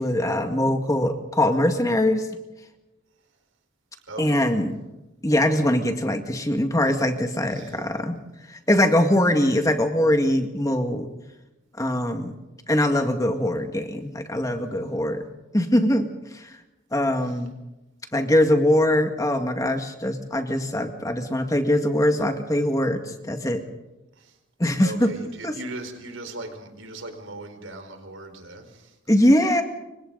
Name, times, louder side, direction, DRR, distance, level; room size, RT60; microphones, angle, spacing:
voice 1, 0.0-2.3 4.2-4.8 5.2-8.2 8.5-11.1 11.8-12.4 12.7-15.2 15.5-16.1 16.3-16.5 16.9-17.5 18.1-23.6 24.6-25.1 25.4-25.5 29.1-29.6, left 1 dB, 15° left, 5 dB, 2.0 m, -22 dB
voice 2, 4.1-4.4 7.5-7.8 24.2-24.3 24.8-28.9, right 2 dB, 70° right, 6 dB, 4.6 m, -38 dB
29.5 x 25.0 x 4.0 m, 0.99 s
head